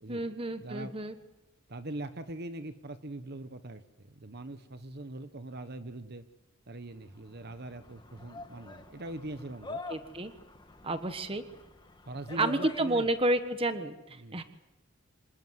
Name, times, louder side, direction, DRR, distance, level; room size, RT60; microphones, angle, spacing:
voice 1, 0.1-1.1 9.9-10.3 10.8-11.4 12.4-14.4, right 2 dB, 25° right, 9 dB, 1.3 m, -30 dB
voice 2, 0.6-1.0 1.7-6.2 6.7-9.8 12.0-13.1 14.2-14.4, right 1 dB, 50° right, 10 dB, 1.2 m, -42 dB
sound 1, 7.0-13.4, left 2 dB, 20° left, 1.5 m, -46 dB
26.5 x 18.5 x 8.1 m, 0.97 s
head